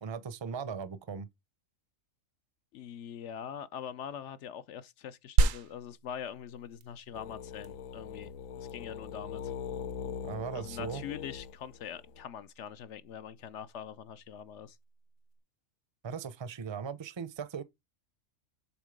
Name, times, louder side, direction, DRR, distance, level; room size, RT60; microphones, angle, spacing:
voice 1, 0.0-1.3 10.2-11.0 16.0-17.6, right 6 dB, 30° right, 0.5 m, -38 dB
voice 2, 2.7-8.3 8.6-9.5 10.5-14.8, left 9 dB, 70° left, 0.8 m, -43 dB
sound 1, 5.4-15.4, right 5 dB, 80° right, 1.0 m, -35 dB
sound 2, 7.1-12.2, left 7 dB, 90° left, 1.1 m, -41 dB
7.2 x 3.7 x 5.0 m
omnidirectional pair, 1.4 m